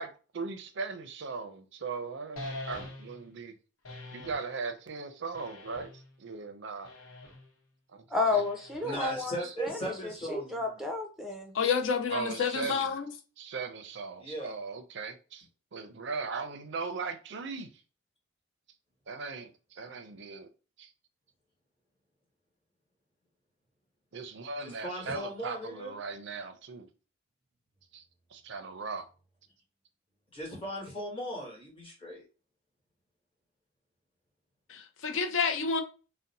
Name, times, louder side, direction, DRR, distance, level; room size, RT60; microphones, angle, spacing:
voice 1, 0.0-3.5 4.1-5.9 6.2-6.9 7.9-8.4 8.8-9.5 12.1-12.9 13.4-15.5 15.7-17.7 19.1-20.5 20.8-20.9 24.1-26.9 27.9-28.0 28.3-29.1, right 4 dB, 55° right, 0.4 m, -38 dB
sound 1, 2.4-3.3 3.8-4.5 5.3-6.1 6.8-7.5 8.3-9.1, left 1 dB, 85° left, 0.9 m, -43 dB
voice 2, 8.1-11.5, left 3 dB, ahead, 0.5 m, -32 dB
voice 3, 8.8-10.9 14.2-14.5 24.6-26.0 30.3-32.2, equal, 25° left, 1.2 m, -38 dB
voice 4, 11.5-13.1 34.7-35.8, left 5 dB, 65° left, 0.5 m, -29 dB
2.6 x 2.0 x 3.9 m
head